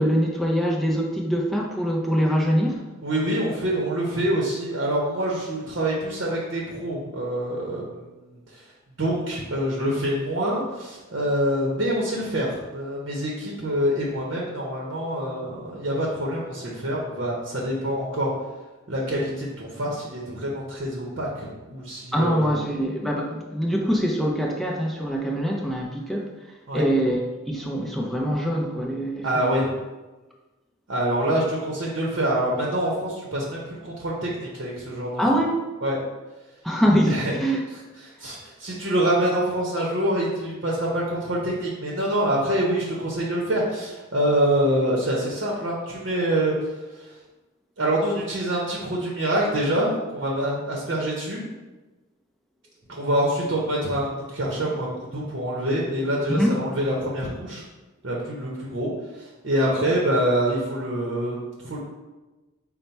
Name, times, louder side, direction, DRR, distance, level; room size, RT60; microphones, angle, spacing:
voice 1, 0.0-2.8 22.1-26.3 26.7-29.5 35.2-35.5 36.6-37.6 56.3-56.6, equal, ahead, -2 dB, 0.5 m, -24 dB
voice 2, 3.0-8.6 9.0-18.3 18.9-22.5 26.7-26.8 29.2-29.7 30.9-35.2 35.8-36.0 37.1-37.3 38.0-47.1 47.8-51.4 53.0-57.6 58.0-58.9 59.1-61.4 61.6-61.8, right 1 dB, 60° right, -3 dB, 0.8 m, -26 dB
5.4 x 2.2 x 4.4 m, 1.1 s
head